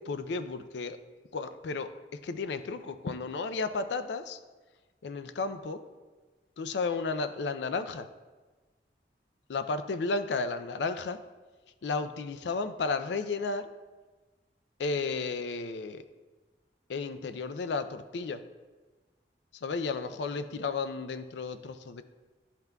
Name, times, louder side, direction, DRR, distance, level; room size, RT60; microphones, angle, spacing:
voice 1, 0.1-1.0 1.3-1.9 2.2-4.4 5.0-5.8 6.6-8.1 9.5-11.2 11.8-13.7 14.8-16.0 16.9-18.4 19.5-22.0, left 4 dB, 85° left, 10 dB, 0.4 m, -33 dB
12.0 x 5.8 x 2.3 m, 1.3 s
head